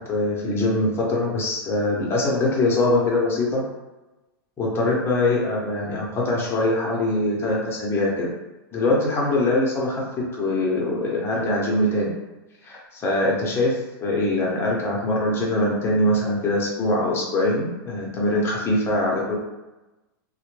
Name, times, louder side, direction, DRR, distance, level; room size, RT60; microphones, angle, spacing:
voice 1, 0.1-3.6 4.6-8.3 8.7-10.0 10.3-12.1 12.6-19.4, left 1 dB, 20° left, -3 dB, 0.7 m, -23 dB
2.1 x 2.1 x 3.1 m, 1.1 s
hypercardioid pair, 130°, 12 cm